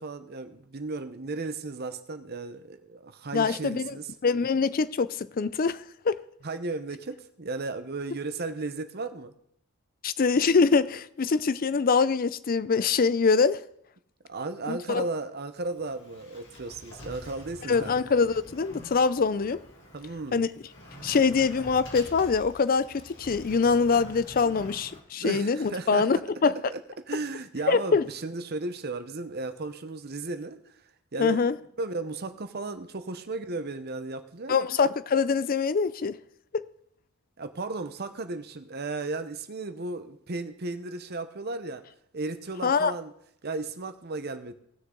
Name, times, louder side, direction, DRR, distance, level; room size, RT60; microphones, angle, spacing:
voice 1, 0.0-4.1 6.4-9.4 14.3-18.0 19.9-20.5 21.1-21.2 24.4-24.5 25.2-26.1 26.5-30.8 31.1-34.7 37.4-41.8 42.1-43.1 43.4-44.5, right 3 dB, 50° right, 0.9 m, -35 dB
voice 2, 3.3-3.9 4.2-5.8 6.1-6.2 10.0-13.6 14.7-15.0 17.7-19.6 20.3-20.5 21.0-26.6 27.7-28.0 31.2-31.5 34.5-36.2 36.5-36.6 42.6-42.9, left 5 dB, 45° left, 0.4 m, -24 dB
Sliding door, 15.6-25.0, left 1 dB, 60° left, 2.5 m, -46 dB
18.0 x 6.6 x 3.8 m
head